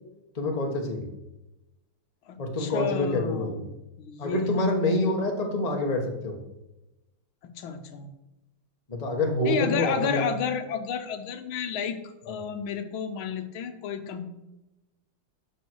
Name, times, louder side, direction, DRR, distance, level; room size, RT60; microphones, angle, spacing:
voice 1, 0.3-1.1 2.4-3.6 4.2-6.4 8.9-10.3 12.3-12.4, left 1 dB, 20° left, 2 dB, 1.2 m, -27 dB
voice 2, 2.3-3.7 4.0-4.5 7.4-8.1 9.5-12.0 12.3-14.3, left 7 dB, 80° left, 8 dB, 1.7 m, -31 dB
11.0 x 6.7 x 4.7 m, 0.97 s
omnidirectional pair, 2.2 m